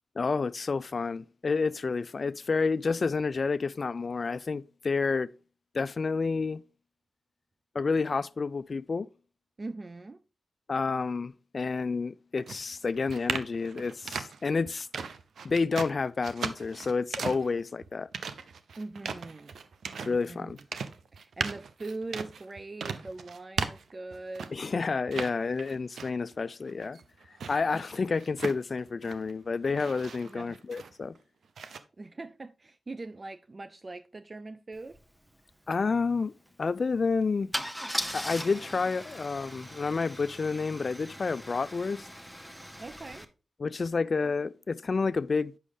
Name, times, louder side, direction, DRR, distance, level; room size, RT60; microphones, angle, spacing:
voice 1, 0.2-5.3 5.7-6.6 7.7-9.1 10.7-14.9 15.4-18.1 20.0-20.6 24.5-27.0 27.5-31.1 35.7-36.3 36.6-37.5 38.1-42.1 43.6-45.5, left 4 dB, 55° left, 0.3 m, -29 dB
voice 2, 9.6-10.2 18.8-19.5 20.0-20.6 21.1-24.7 27.7-27.8 30.2-30.6 32.0-35.0 42.8-43.3, right 2 dB, 40° right, 0.4 m, -41 dB
sound 1, 12.4-24.7 25.1-26.3 26.7-29.3 29.6-31.2 31.6-31.8, right 5 dB, 80° right, 0.6 m, -38 dB
Car / Engine starting / Idling, 34.9-35.0 35.3-35.5 37.5-43.2, equal, 5° right, 0.9 m, -39 dB
8.3 x 6.2 x 3.6 m
cardioid pair, 55°, 0 cm